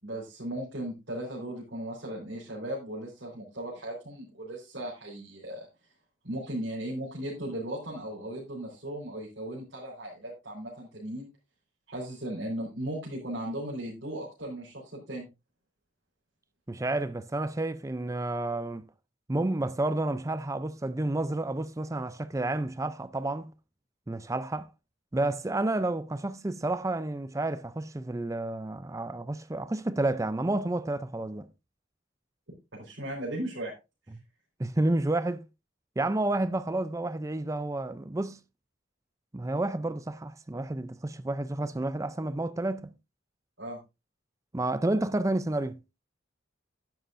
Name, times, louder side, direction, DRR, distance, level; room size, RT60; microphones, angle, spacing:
voice 1, 0.0-5.7 6.2-11.3 11.9-15.3 32.7-33.7 43.6-43.8, right 1 dB, 65° right, 4.1 m, -37 dB
voice 2, 16.7-18.8 19.3-23.5 24.1-24.7 25.1-31.5 34.6-35.4 36.0-38.4 39.3-42.9 44.5-45.8, right 2 dB, 15° right, 0.4 m, -30 dB
11.5 x 10.5 x 2.5 m
head